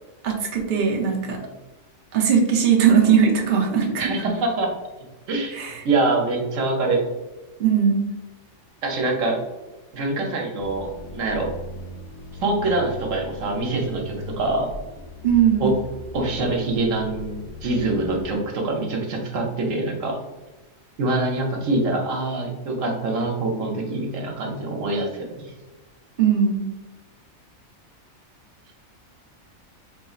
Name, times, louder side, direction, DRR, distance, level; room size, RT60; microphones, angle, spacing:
voice 1, 0.2-1.4 2.1-4.1 5.5-5.8 7.6-8.1 15.2-15.7 26.2-26.7, right 7 dB, 50° right, -1 dB, 0.7 m, -19 dB
voice 2, 4.0-4.7 5.3-5.6 5.8-7.0 8.8-9.4 9.9-11.5 12.4-14.7 15.6-15.7 16.1-20.2 21.0-25.5, right 2 dB, 70° right, 0 dB, 1.1 m, -24 dB
sound 1, 10.6-18.3, left 1 dB, 65° left, 0.7 m, -38 dB
4.0 x 3.0 x 2.4 m, 1.1 s
omnidirectional pair, 1.4 m